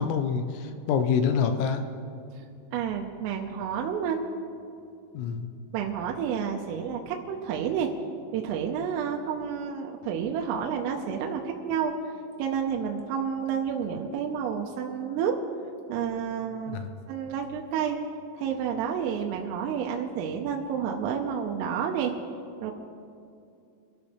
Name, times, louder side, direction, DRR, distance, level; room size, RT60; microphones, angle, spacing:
voice 1, 0.0-1.8 5.1-5.5 16.7-16.9, left 6 dB, 80° left, 7 dB, 3.3 m, -26 dB
voice 2, 2.7-4.3 5.7-7.9 8.3-11.9 12.4-15.3 15.9-16.8 17.1-18.0 18.4-22.1 22.6-22.7, right 7 dB, 85° right, 1 dB, 3.3 m, -30 dB
25.0 x 13.0 x 3.2 m, 2.5 s
omnidirectional pair, 6.0 m